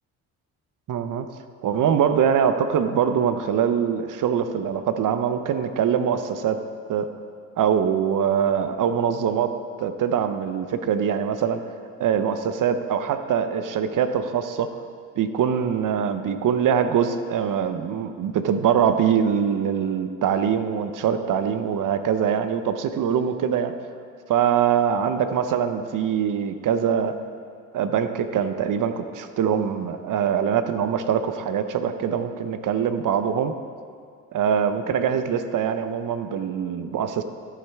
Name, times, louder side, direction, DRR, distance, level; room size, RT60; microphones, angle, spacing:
voice 1, 0.9-1.3 1.6-6.6 6.9-7.1 7.6-11.6 12.0-14.8 15.2-23.7 24.3-27.2 27.7-33.5 34.3-37.2, right 8 dB, 60° right, 10 dB, 0.8 m, -23 dB
13.5 x 8.1 x 3.5 m, 2.2 s
supercardioid pair, 65°, 36 cm